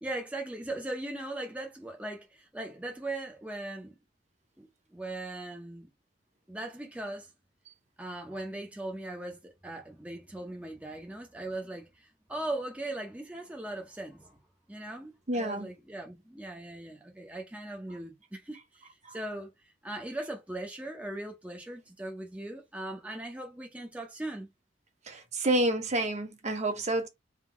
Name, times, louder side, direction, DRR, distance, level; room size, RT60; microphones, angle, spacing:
voice 1, 0.0-4.0 4.6-5.9 6.5-7.3 8.0-14.4 14.7-19.5 19.8-24.5, right 1 dB, 5° right, 0.7 m, -39 dB
voice 2, 15.3-15.7 25.1-27.1, right 1 dB, 40° right, 1.0 m, -29 dB
3.7 x 2.7 x 4.6 m
head